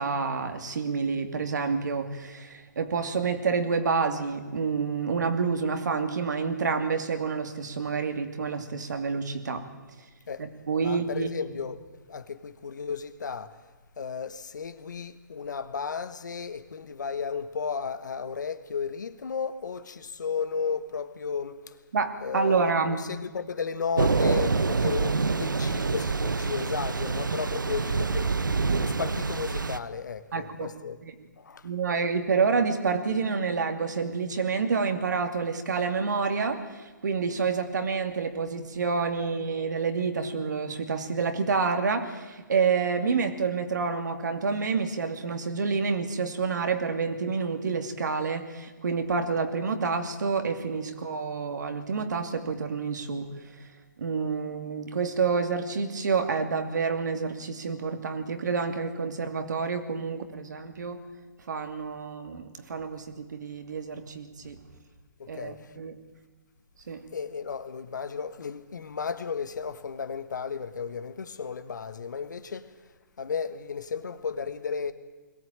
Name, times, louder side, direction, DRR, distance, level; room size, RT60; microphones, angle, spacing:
voice 1, 0.0-9.7 10.4-11.3 21.9-23.0 30.3-30.7 31.0-31.1 31.6-53.7 54.0-61.0 61.5-64.6 65.3-65.9 66.9-67.1, right 5 dB, 65° right, 2.6 m, -28 dB
voice 2, 10.8-13.7 14.0-21.8 22.2-31.0 31.4-31.7 65.2-65.8 67.1-74.9, left 6 dB, 70° left, 1.5 m, -34 dB
Thunder / Rain, 24.0-29.8, right 4 dB, 85° right, 0.9 m, -26 dB
21.5 x 17.5 x 8.8 m
figure-of-eight pair, 135°, 10 cm